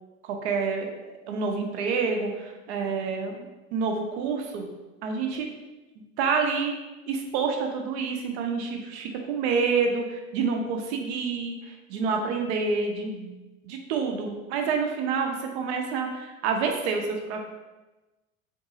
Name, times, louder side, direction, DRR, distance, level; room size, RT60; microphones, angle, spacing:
voice 1, 0.2-4.7 5.0-5.5 6.2-6.7 7.1-13.3 13.6-17.4, right 5 dB, 55° right, 3 dB, 0.6 m, -28 dB
3.6 x 2.6 x 2.7 m, 1.1 s
figure-of-eight pair, 75°, 40 cm